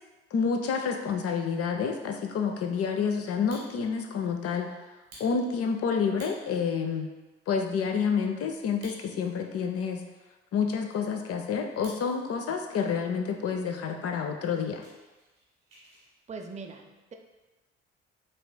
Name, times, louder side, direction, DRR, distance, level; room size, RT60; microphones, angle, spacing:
voice 1, 0.3-4.7 5.2-7.1 7.5-10.0 10.5-14.8, left 6 dB, 50° left, 4 dB, 0.6 m, -29 dB
Fire, 3.3-4.1 4.5-4.6 5.0-6.7 7.2-7.3 7.5-7.9 8.6-9.5 9.8-9.9 10.4-12.2 12.5-12.9 13.5-13.6 13.9-14.0 14.3-16.1, right 1 dB, 90° right, 1.5 m, -52 dB
voice 2, 16.3-17.2, right 4 dB, 20° right, 4 dB, 0.5 m, -41 dB
5.1 x 3.2 x 2.2 m, 1.1 s
hypercardioid pair, 45°, 31 cm